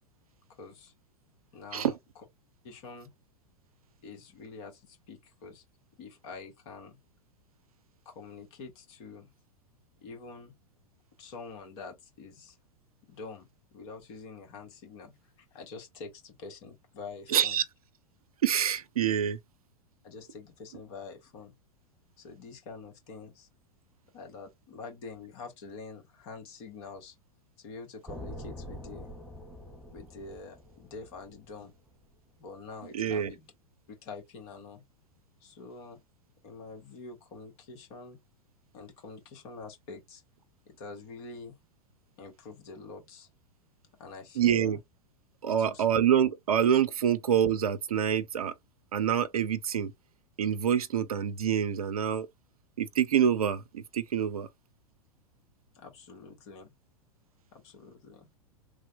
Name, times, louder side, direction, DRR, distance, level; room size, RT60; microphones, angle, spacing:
voice 1, 0.5-0.9 1.5-1.9 2.6-3.1 4.0-5.6 6.0-7.0 8.0-9.3 10.0-10.5 11.2-12.6 13.1-17.6 20.0-21.5 22.2-23.5 24.1-27.1 27.6-29.1 29.9-31.7 32.4-33.5 33.9-34.8 35.4-36.0 36.4-38.2 38.7-40.2 40.7-41.6 42.2-43.3 44.0-44.8 45.5-45.8 55.7-56.7 57.5-58.3, left 4 dB, 50° left, 1.4 m, -46 dB
voice 2, 17.3-17.6 18.4-19.4 32.9-33.3 44.4-44.8 45.4-48.5 48.9-49.9 50.4-52.3 52.8-54.5, right 9 dB, 70° right, 0.5 m, -26 dB
sound 1, 28.1-32.2, equal, ahead, 0.6 m, -45 dB
3.3 x 2.1 x 2.5 m
figure-of-eight pair, 95°, 19 cm